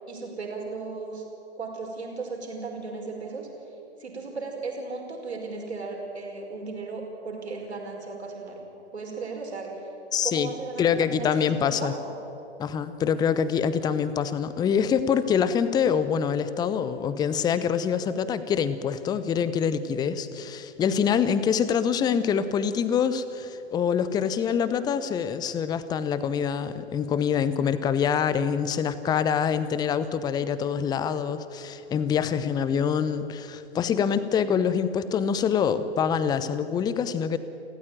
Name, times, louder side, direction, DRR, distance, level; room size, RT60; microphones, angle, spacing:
voice 1, 0.1-1.3 1.6-3.5 4.0-8.6 8.9-9.9 10.2-12.1, right 4 dB, 70° right, 1 dB, 5.3 m, -36 dB
voice 2, 10.1-10.5 10.8-11.9 12.6-37.4, left 7 dB, 10° left, 14 dB, 0.8 m, -25 dB
29.5 x 14.5 x 9.1 m, 2.8 s
figure-of-eight pair, 110°, 34 cm